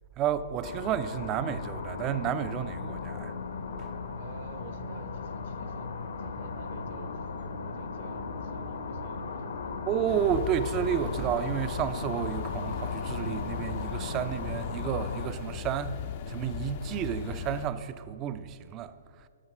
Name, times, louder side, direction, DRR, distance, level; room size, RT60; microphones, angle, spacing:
voice 1, 0.2-3.4 3.8-3.9 9.9-19.3, right 9 dB, 25° right, 0.5 m, -31 dB
sound 1, 0.6-15.3, left 4 dB, 70° left, 1.1 m, -37 dB
voice 2, 4.2-5.9 6.2-9.9, right 6 dB, 50° right, 0.9 m, -49 dB
sound 2, 10.1-17.7, left 8 dB, 45° left, 0.6 m, -37 dB
12.5 x 5.9 x 6.2 m
hypercardioid pair, 135°, 0 cm